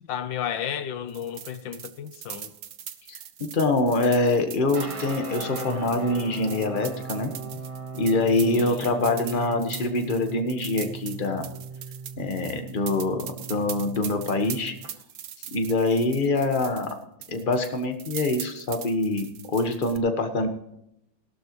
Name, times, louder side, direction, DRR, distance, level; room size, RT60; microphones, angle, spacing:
voice 1, 0.0-2.5 7.5-7.6 8.5-8.9 15.4-15.5, left 9 dB, 75° left, 1.6 m, -33 dB
sound 1, 1.1-17.0 17.2-20.0, right 9 dB, 60° right, 0.8 m, -41 dB
voice 2, 3.1-7.3 8.0-11.4 12.2-14.8 15.5-16.9 17.3-20.5, left 2 dB, 30° left, 1.4 m, -25 dB
sound 2, 4.7-14.9, right 4 dB, 20° right, 1.2 m, -39 dB
17.5 x 12.5 x 3.1 m
omnidirectional pair, 2.1 m